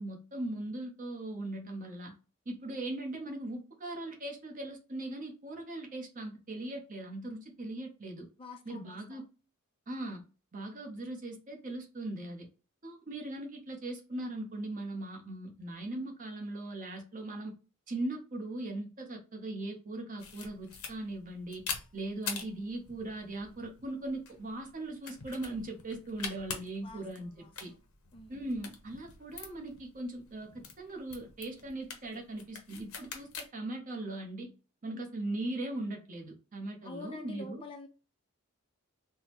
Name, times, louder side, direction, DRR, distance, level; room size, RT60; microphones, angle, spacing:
voice 1, 0.0-2.1 2.5-8.3 8.7-9.2 9.9-10.2 10.5-12.5 12.8-17.5 17.9-21.6 21.9-27.3 27.6-27.7 28.3-34.5 34.8-37.6, right 2 dB, 40° right, 0.7 m, -39 dB
voice 2, 8.4-9.2 26.8-27.8 28.1-28.5 34.9-35.1 36.8-37.9, left 3 dB, 25° left, 0.4 m, -47 dB
sound 1, 20.2-33.5, left 6 dB, 85° left, 0.7 m, -45 dB
3.6 x 2.0 x 2.9 m
head